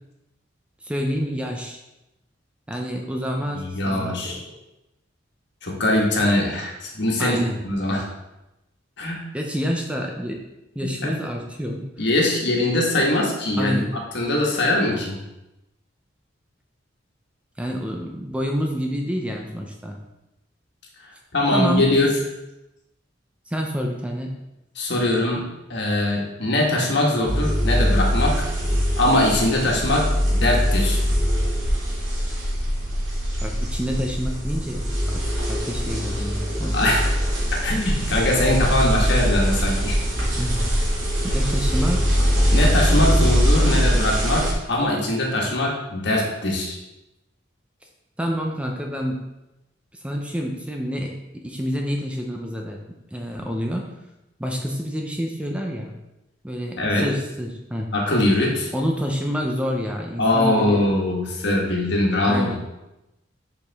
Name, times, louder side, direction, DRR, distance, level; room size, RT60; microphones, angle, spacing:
voice 1, 0.8-1.8 2.7-4.2 7.2-7.6 9.3-10.4 10.8-12.1 13.6-13.9 17.6-20.0 21.5-21.9 23.5-24.3 33.4-35.2 35.5-36.8 40.4-40.8 41.3-42.2 43.3-43.9 48.2-49.2 49.9-52.8 53.1-53.8 54.4-55.9 56.4-57.9 58.7-60.9 62.2-62.6, equal, 5° right, 1 dB, 0.5 m, -28 dB
voice 2, 3.5-4.4 5.6-8.0 9.0-9.2 10.8-11.1 12.0-13.8 14.1-15.2 21.3-22.1 24.7-25.4 25.7-28.4 29.0-31.0 36.7-37.1 37.6-40.0 42.5-46.8 56.8-57.1 57.9-58.7 60.2-62.5, left 1 dB, 60° left, -1 dB, 1.5 m, -22 dB
sound 1, 27.2-44.5, equal, 90° right, 2.2 m, -22 dB
6.8 x 5.0 x 3.5 m, 0.95 s
head